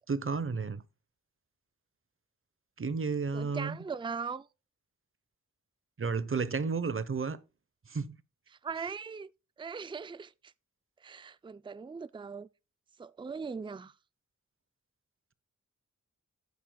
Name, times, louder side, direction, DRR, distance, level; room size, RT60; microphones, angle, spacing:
voice 1, 0.1-0.8 2.8-3.8 6.0-7.4 7.9-8.2, right 4 dB, 45° right, 0.9 m, -32 dB
voice 2, 3.3-4.5 8.6-9.3 9.6-10.5 11.0-12.5 13.0-13.9, right 5 dB, 15° right, 0.4 m, -39 dB
12.0 x 9.4 x 2.3 m
wide cardioid pair, 85°, 31 cm